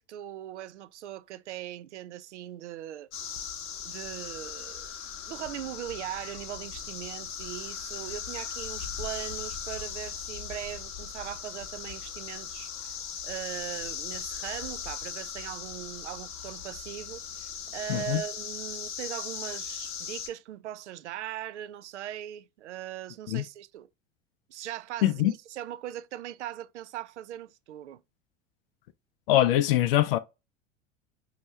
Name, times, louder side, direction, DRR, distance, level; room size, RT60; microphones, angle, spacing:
voice 1, 0.0-3.1 3.8-4.9 5.3-12.9 13.2-23.9 24.5-28.0, right 12 dB, 65° right, 0.5 m, -40 dB
sound 1, 3.1-20.3, left 7 dB, 35° left, 0.9 m, -38 dB
voice 2, 17.9-18.2 23.3-23.4 25.0-25.3 29.3-30.2, left 13 dB, 50° left, 0.5 m, -23 dB
5.3 x 2.7 x 3.2 m
figure-of-eight pair, 80°, 38 cm